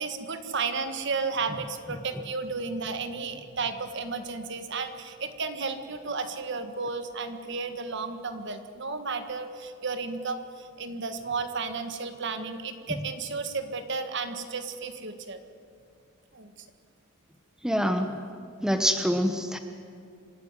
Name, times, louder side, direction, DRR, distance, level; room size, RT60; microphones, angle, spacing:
voice 1, 0.0-15.4 16.3-16.5, right 4 dB, 55° right, 8 dB, 1.6 m, -33 dB
voice 2, 17.6-18.2 18.6-19.6, equal, 5° right, 6 dB, 0.9 m, -25 dB
26.5 x 13.0 x 9.8 m, 2.2 s
head